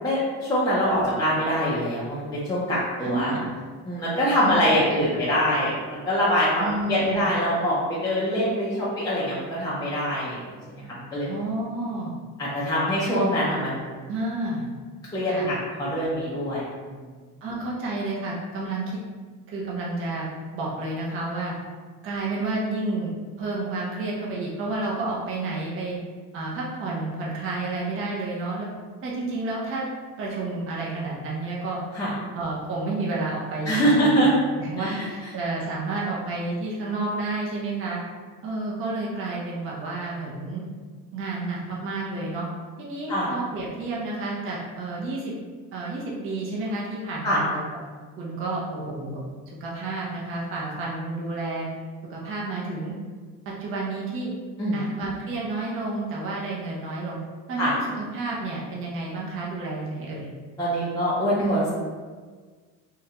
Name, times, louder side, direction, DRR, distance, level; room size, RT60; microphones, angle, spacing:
voice 1, 0.0-3.3 3.9-10.4 10.7-11.3 12.4-14.0 15.1-17.0 31.9-32.1 33.7-34.3 34.8-35.1 43.1-43.3 47.2-47.4 54.6-54.8 57.6-57.7 60.6-61.7, equal, 10° left, -9 dB, 0.4 m, -24 dB
voice 2, 3.0-3.5 4.4-4.6 4.9-5.0 6.6-7.3 11.2-12.1 13.1-13.3 14.1-14.6 15.2-15.5 17.4-19.0 19.5-20.3 20.5-21.5 22.0-26.0 26.3-28.7 29.0-29.9 30.2-31.8 32.4-38.0 38.4-40.6 41.1-42.5 42.8-45.3 45.7-47.6 48.2-49.2 49.6-51.7 52.1-52.9 53.5-54.3 54.7-57.2 57.5-60.3, right 2 dB, 40° right, -5 dB, 0.6 m, -30 dB
3.6 x 2.2 x 2.8 m, 1.5 s
cardioid pair, 155°, 34 cm